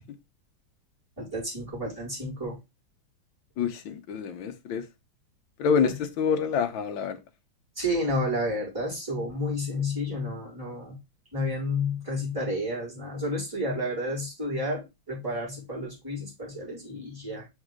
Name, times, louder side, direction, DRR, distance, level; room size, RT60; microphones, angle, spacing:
voice 1, 1.2-2.6 5.8-5.9 7.7-11.0 11.3-17.5, left 1 dB, 10° right, 4.8 m, -31 dB
voice 2, 3.6-4.8 5.6-7.2, left 6 dB, 70° left, 1.6 m, -27 dB
6.3 x 4.9 x 3.7 m
omnidirectional pair, 2.3 m